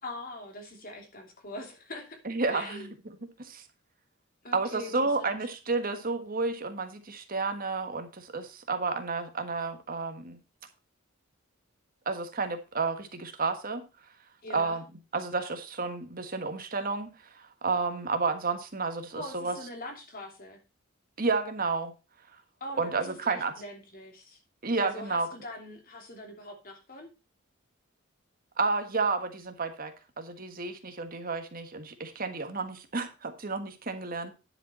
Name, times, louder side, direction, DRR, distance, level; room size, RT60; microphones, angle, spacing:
voice 1, 0.0-2.2 2.5-2.9 4.4-5.3 14.4-14.8 19.1-20.6 22.6-24.4 24.8-27.1, left 1 dB, 45° left, 3 dB, 2.9 m, -43 dB
voice 2, 2.2-2.9 3.4-3.6 4.5-10.4 12.0-13.8 14.5-14.8 15.1-17.1 17.3-19.6 21.2-21.9 22.8-23.5 24.6-25.3 28.6-34.3, right 4 dB, 45° right, 7 dB, 1.5 m, -31 dB
10.5 x 6.9 x 4.2 m, 0.29 s
head